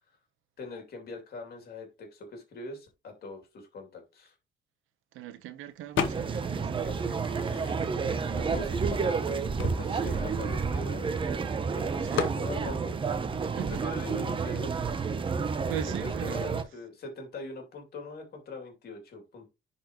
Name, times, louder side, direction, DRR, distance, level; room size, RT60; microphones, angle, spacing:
voice 1, 0.6-4.3 8.3-9.5 9.8-11.1 11.7-13.0 13.2-14.8 15.7-19.5, left 3 dB, 50° left, 2.7 m, -42 dB
voice 2, 5.1-7.3 7.8-7.9 8.2-9.0 10.0-10.3 12.0-12.3 13.4-13.8 15.7-16.6, right 11 dB, 90° right, 1.0 m, -41 dB
sound 1, 6.0-6.5 6.9-8.1 8.8-8.9 9.1-11.3 12.2-12.5, left 8 dB, 80° left, 1.0 m, -34 dB
sound 2, 6.0-16.6, right 5 dB, 25° right, 0.7 m, -30 dB
10.0 x 4.2 x 3.0 m
cardioid pair, 150°, 20 cm